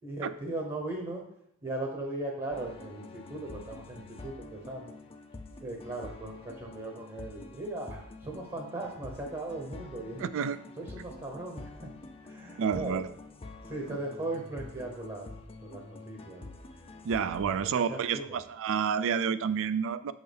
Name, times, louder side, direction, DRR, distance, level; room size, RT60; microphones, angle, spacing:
voice 1, 0.0-1.2 1.6-4.9 5.6-10.3 10.8-13.0 13.6-15.3 15.6-16.5 17.2-18.4, right 2 dB, 25° right, 1 dB, 0.8 m, -38 dB
sound 1, 2.5-17.5, left 3 dB, 25° left, 0.5 m, -47 dB
voice 2, 10.2-10.6 12.6-13.1 17.0-20.1, right 7 dB, 65° right, 14 dB, 0.4 m, -29 dB
6.4 x 5.6 x 3.4 m, 0.78 s
head